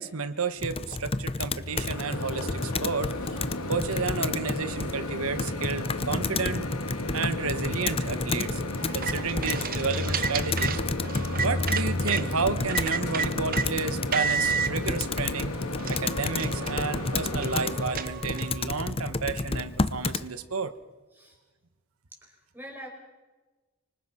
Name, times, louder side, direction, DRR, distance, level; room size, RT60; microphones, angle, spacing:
voice 1, 0.0-3.4 3.7-6.7 7.1-8.6 8.9-10.8 11.4-15.5 15.9-20.8, right 4 dB, 70° right, 12 dB, 1.4 m, -31 dB
Computer keyboard, 0.6-20.3, left 3 dB, 25° left, 0.7 m, -31 dB
Microwave oven, 1.6-17.9, left 1 dB, 85° left, 3.2 m, -35 dB
sound 1, 8.8-12.2 12.7-13.7 14.1-14.7 15.4-15.5 15.8-18.6, right 6 dB, 40° right, 1.1 m, -31 dB
voice 2, 22.2-22.9, equal, 10° right, 1 dB, 5.0 m, -44 dB
25.5 x 25.0 x 5.9 m, 1.2 s
head